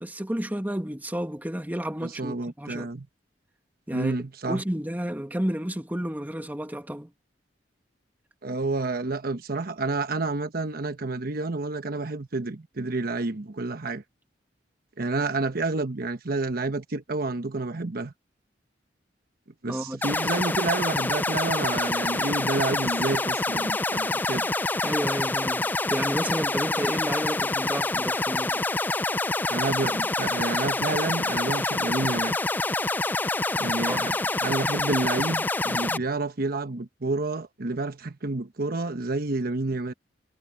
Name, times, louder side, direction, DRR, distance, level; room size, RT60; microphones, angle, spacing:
voice 1, 0.0-2.9 3.9-4.2 4.5-7.1 19.7-20.0 24.8-28.6 33.8-34.1, equal, 10° right, 1.7 m, -31 dB
voice 2, 2.0-3.1 3.9-4.6 8.4-14.0 15.0-18.1 19.6-24.5 29.5-32.4 33.6-39.9, right 3 dB, 55° right, 1.1 m, -29 dB
sound 1, 20.0-36.0, left 2 dB, 10° left, 0.3 m, -26 dB
head